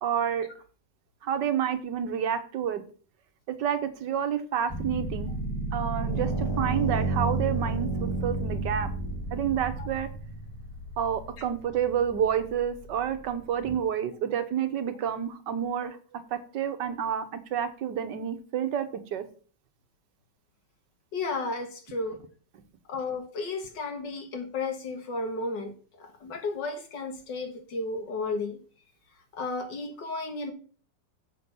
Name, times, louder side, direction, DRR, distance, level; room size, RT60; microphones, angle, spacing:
voice 1, 0.0-0.5 1.2-2.8 3.6-5.3 5.7-8.9 9.3-10.1 11.0-16.0 16.3-17.2 17.5-19.2, right 8 dB, 85° right, 9 dB, 1.6 m, -29 dB
sound 1, 4.7-13.8, right 2 dB, 15° left, 1.1 m, -32 dB
voice 2, 21.1-22.2 22.9-28.6 29.3-30.5, left 3 dB, 90° left, 6 dB, 2.2 m, -33 dB
7.6 x 6.0 x 5.5 m, 0.41 s
omnidirectional pair, 1.9 m